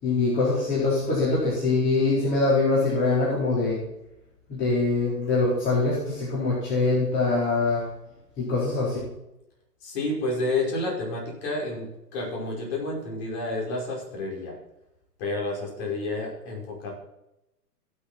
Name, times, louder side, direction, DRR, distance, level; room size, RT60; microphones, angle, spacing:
voice 1, 0.0-3.8 4.5-7.8 8.4-9.0, left 3 dB, 25° left, -6 dB, 4.1 m, -23 dB
voice 2, 9.8-14.6 15.2-16.9, left 2 dB, 40° left, -2 dB, 5.4 m, -30 dB
17.0 x 7.0 x 4.4 m, 0.89 s
hypercardioid pair, 135°, 48 cm